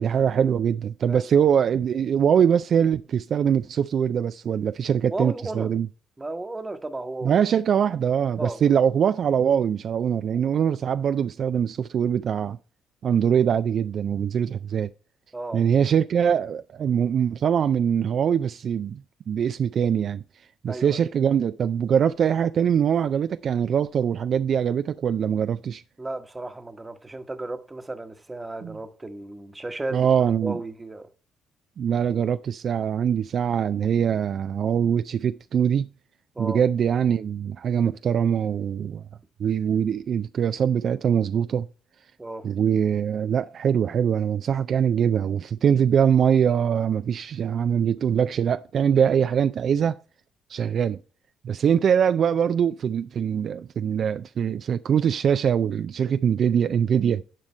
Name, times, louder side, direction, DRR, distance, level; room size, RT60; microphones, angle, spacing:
voice 1, 0.0-5.9 7.2-12.6 13.0-14.9 15.5-19.0 19.3-20.2 20.6-25.8 28.6-28.8 29.9-30.6 31.8-35.9 36.4-39.0 39.4-41.7 42.4-50.0 50.5-51.0 51.4-57.2, right 8 dB, 60° right, 0.3 m, -23 dB
voice 2, 1.1-1.5 5.1-5.7 6.2-7.4 8.4-8.8 15.3-15.6 20.7-21.1 26.0-30.1 30.4-31.1 36.3-36.6 42.2-42.5, right 2 dB, 20° right, 1.0 m, -34 dB
10.5 x 4.9 x 4.3 m
supercardioid pair, 65°, 0 cm